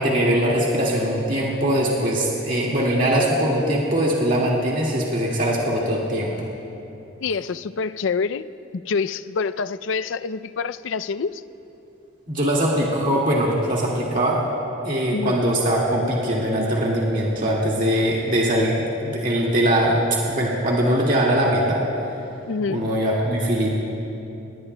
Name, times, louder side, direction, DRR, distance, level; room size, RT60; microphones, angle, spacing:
voice 1, 0.0-6.5 12.3-14.4 14.8-18.7 19.0-21.8 22.7-23.7, right 1 dB, 45° right, -4 dB, 1.9 m, -21 dB
voice 2, 7.2-8.5 8.7-11.4 15.1-15.4 22.5-22.8, left 5 dB, 80° left, 13 dB, 0.4 m, -26 dB
29.0 x 18.5 x 2.2 m, 2.9 s
head